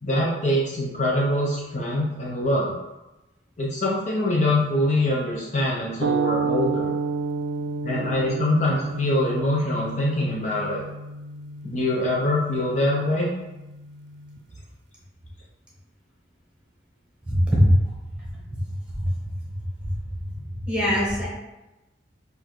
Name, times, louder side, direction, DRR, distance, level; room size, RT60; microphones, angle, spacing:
voice 1, 0.0-2.7 3.6-6.9 7.8-10.8 11.6-13.3, left 1 dB, 40° left, -4 dB, 0.7 m, -24 dB
sound 1, 6.0-14.4, right 4 dB, 75° right, 0.4 m, -31 dB
voice 2, 17.3-17.7 19.0-19.1 19.8-19.9 20.3-20.4 20.6-21.3, equal, 5° right, -5 dB, 1.4 m, -21 dB
4.4 x 2.7 x 4.4 m, 1.0 s
head